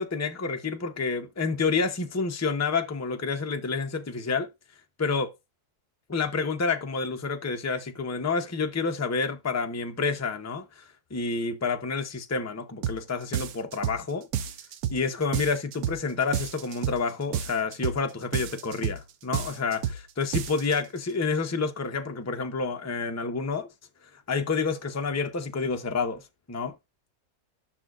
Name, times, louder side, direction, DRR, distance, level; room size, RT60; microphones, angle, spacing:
voice 1, 0.0-4.5 5.0-5.3 6.1-14.3 14.9-19.9 20.2-23.7 24.3-26.2 26.5-26.7, left 4 dB, 20° left, 0.5 m, -29 dB
sound 1, 12.8-13.0 13.3-14.0 14.3-15.0 15.3-16.0 16.3-17.0 17.3-18.0 18.3-19.0 19.3-20.0 20.3-20.8, right 9 dB, 75° right, 1.2 m, -30 dB
11.0 x 6.2 x 2.5 m
omnidirectional pair, 1.6 m